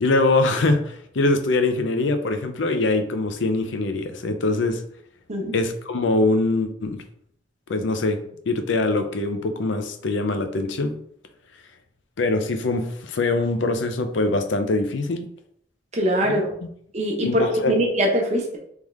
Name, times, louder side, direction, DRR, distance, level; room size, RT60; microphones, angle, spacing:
voice 1, 0.0-4.8 5.5-7.0 7.7-11.0 12.2-15.3 16.2-16.4 17.2-17.7, left 2 dB, 80° left, 7 dB, 0.6 m, -23 dB
voice 2, 15.9-16.5 16.9-18.6, equal, 35° right, 0 dB, 0.9 m, -22 dB
3.6 x 3.5 x 3.2 m, 0.68 s
head